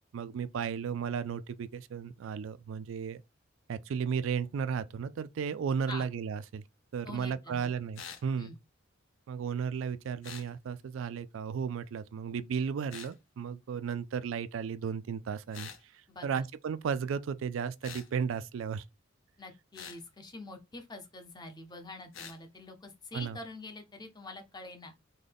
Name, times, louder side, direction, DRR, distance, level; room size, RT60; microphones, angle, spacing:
voice 1, 0.1-3.2 3.7-6.6 6.9-8.5 9.3-18.8 23.1-23.4, right 6 dB, 75° right, 0.3 m, -34 dB
voice 2, 7.0-7.7 8.4-8.6 16.1-16.4 19.4-24.9, left 2 dB, 20° left, 0.7 m, -46 dB
sound 1, 7.9-8.3 10.2-10.5 12.9-13.1 15.5-15.8 17.8-18.1 19.7-20.0 22.1-22.4, left 7 dB, 80° left, 0.7 m, -45 dB
3.8 x 2.2 x 3.4 m
head